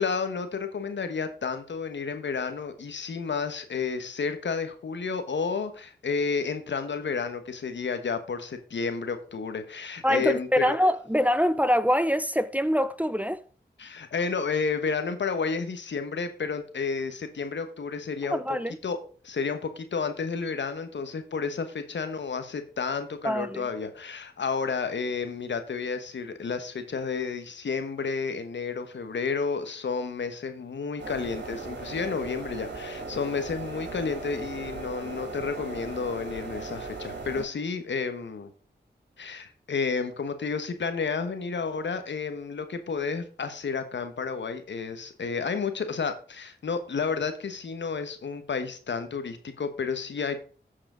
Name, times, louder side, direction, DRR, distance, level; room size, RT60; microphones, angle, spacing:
voice 1, 0.0-10.8 13.8-18.6 18.8-19.0 19.2-38.5 39.2-50.4, left 5 dB, 75° left, 1.1 m, -31 dB
voice 2, 10.0-13.4 18.3-18.8 23.2-23.6, equal, 10° right, 0.6 m, -24 dB
sound 1, 31.0-37.4, right 3 dB, 70° right, 3.0 m, -38 dB
14.0 x 4.8 x 3.8 m
cardioid pair, 45°, 19 cm